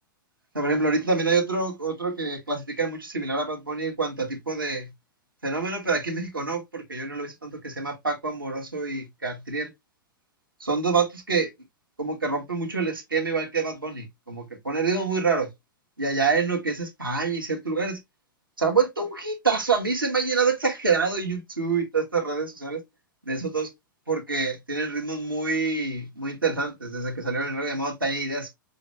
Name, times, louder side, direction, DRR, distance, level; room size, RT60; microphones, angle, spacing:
voice 1, 0.5-4.9 5.4-9.7 10.6-11.5 12.0-15.5 16.0-18.0 18.6-22.8 23.3-23.7 24.1-28.5, right 4 dB, 85° right, 1.3 m, -26 dB
5.4 x 2.8 x 2.9 m
figure-of-eight pair, 100°, 11 cm